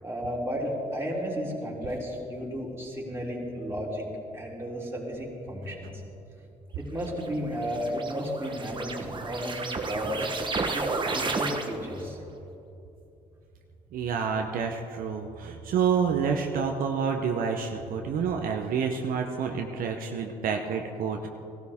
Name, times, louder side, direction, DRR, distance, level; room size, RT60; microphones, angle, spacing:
voice 1, 0.0-4.1 4.3-5.9 6.8-10.3 10.7-12.2, equal, 15° right, -3 dB, 3.4 m, -33 dB
sound 1, 7.1-12.0, right 3 dB, 30° right, 1.2 m, -32 dB
voice 2, 13.9-21.3, right 6 dB, 70° right, 3 dB, 0.9 m, -28 dB
16.5 x 12.5 x 3.6 m, 2.8 s
supercardioid pair, 70°, 15 cm